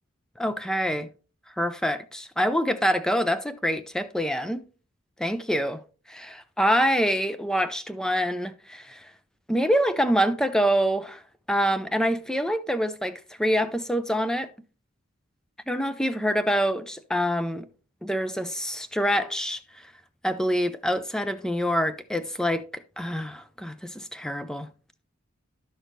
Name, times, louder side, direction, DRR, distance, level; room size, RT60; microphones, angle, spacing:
voice 1, 0.4-1.1 1.6-4.6 5.2-5.8 6.1-9.1 9.5-11.2 11.5-14.5 15.7-17.7 18.0-19.6 20.2-22.7 23.0-24.7, equal, 5° left, 0.4 m, -26 dB
11.0 x 6.3 x 2.6 m
head